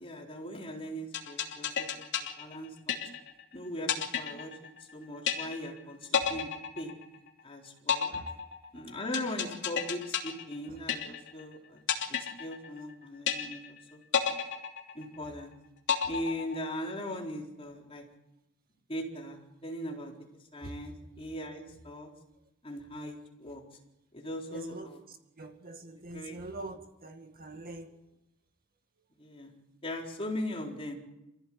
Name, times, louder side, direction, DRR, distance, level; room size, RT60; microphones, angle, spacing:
voice 1, 0.0-2.1 2.4-3.0 3.5-6.5 6.8-6.9 7.4-8.2 8.7-11.8 12.1-14.4 14.9-15.5 16.1-18.0 18.9-20.1 20.5-22.1 22.6-23.6 24.1-25.0 26.1-26.4 29.2-29.5 29.8-30.9, left 1 dB, 25° left, 0 dB, 4.2 m, -39 dB
sound 1, 1.1-3.4 3.9-4.9 5.3-5.8 6.1-7.4 7.9-11.4 11.9-12.9 13.3-13.8 14.1-15.4 15.9-16.9, left 8 dB, 55° left, 3.1 m, -31 dB
voice 2, 24.5-28.0, right 2 dB, 45° right, 5 dB, 2.1 m, -45 dB
29.0 x 15.5 x 8.7 m, 0.91 s
head